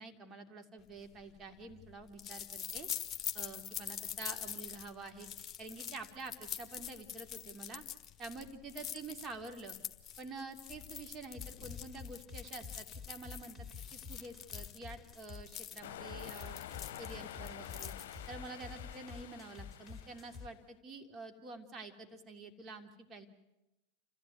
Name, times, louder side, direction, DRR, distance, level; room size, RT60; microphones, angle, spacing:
voice 1, 0.0-2.9 3.3-5.3 5.6-7.8 8.2-9.8 10.2-13.7 13.9-16.6 17.0-17.9 18.3-23.3, right 3 dB, 30° right, 5 dB, 3.0 m, -48 dB
sound 1, 1.0-18.4, left 9 dB, 30° left, 1.5 m, -45 dB
sound 2, 11.3-15.5 16.1-20.5, left 5 dB, ahead, 3.5 m, -49 dB
sound 3, 15.8-20.5, left 11 dB, 70° left, 0.8 m, -48 dB
27.5 x 15.0 x 9.4 m, 0.96 s
hypercardioid pair, 95°, 0 cm